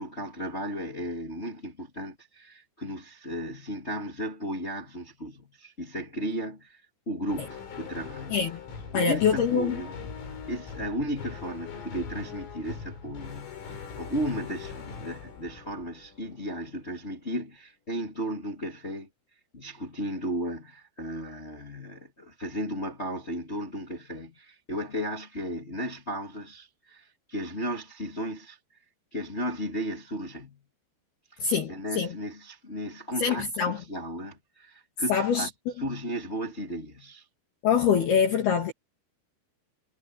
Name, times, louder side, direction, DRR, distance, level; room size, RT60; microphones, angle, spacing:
voice 1, 0.0-8.4 8.9-9.9 10.5-19.1 19.5-28.6 29.1-30.6 31.3-35.5 35.8-37.2, equal, 20° left, 2.1 m, -35 dB
sound 1, 7.3-16.7, left 5 dB, 85° left, 8.5 m, -41 dB
voice 2, 8.9-9.8 31.4-32.1 33.2-33.8 35.1-35.5 37.6-38.7, left 7 dB, 55° left, 3.9 m, -24 dB
omnidirectional pair, 5.8 m